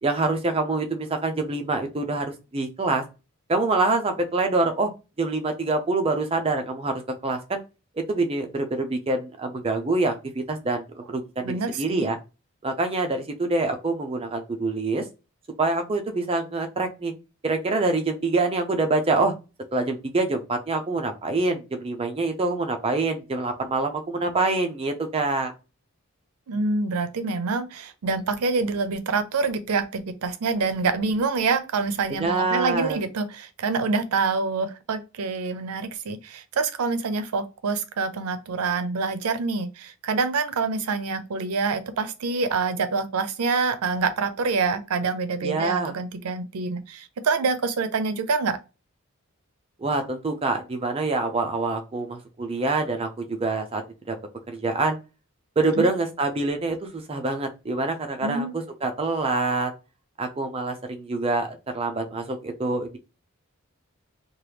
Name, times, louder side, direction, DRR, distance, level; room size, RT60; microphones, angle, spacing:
voice 1, 0.0-3.0 3.5-4.9 5.2-7.6 8.0-12.2 12.6-15.0 15.6-17.1 17.4-19.3 19.7-25.5 32.2-33.0 45.4-45.9 49.8-53.8 54.1-54.2 54.5-55.0 55.6-59.7 60.2-63.0, right 3 dB, 25° right, 0.4 m, -26 dB
voice 2, 11.4-12.1 26.5-48.6 55.8-55.9 58.2-58.5, right 4 dB, 80° right, 0.5 m, -26 dB
2.9 x 2.3 x 3.3 m
head